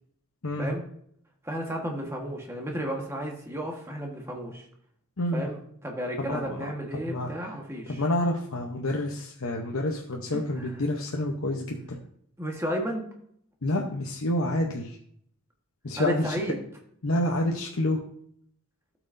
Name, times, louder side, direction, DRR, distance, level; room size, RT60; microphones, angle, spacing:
voice 1, 0.4-0.7 5.2-5.4 6.2-6.7 7.0-7.5 7.9-12.0 13.6-15.0 15.8-16.4 17.0-18.0, left 1 dB, 70° left, 0 dB, 0.8 m, -28 dB
voice 2, 1.4-4.6 5.3-8.0 10.3-10.7 12.4-13.0 16.0-16.6, equal, 10° right, 1 dB, 1.3 m, -33 dB
12.5 x 6.1 x 2.6 m, 0.67 s
head